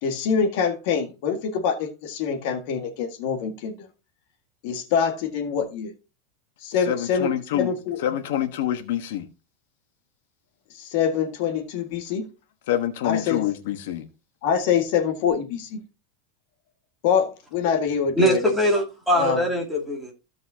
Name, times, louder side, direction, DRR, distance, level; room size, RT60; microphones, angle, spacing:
voice 1, 0.0-3.7 4.6-5.9 6.6-8.0 10.8-12.3 13.0-13.5 14.4-15.8 17.0-18.5 19.1-19.4, left 7 dB, 50° left, 1.8 m, -25 dB
voice 2, 6.9-7.7 8.0-9.3 12.7-14.0, left 11 dB, 70° left, 1.2 m, -26 dB
voice 3, 18.2-20.1, equal, ahead, 2.5 m, -22 dB
15.5 x 5.4 x 2.8 m
supercardioid pair, 175°, 0 cm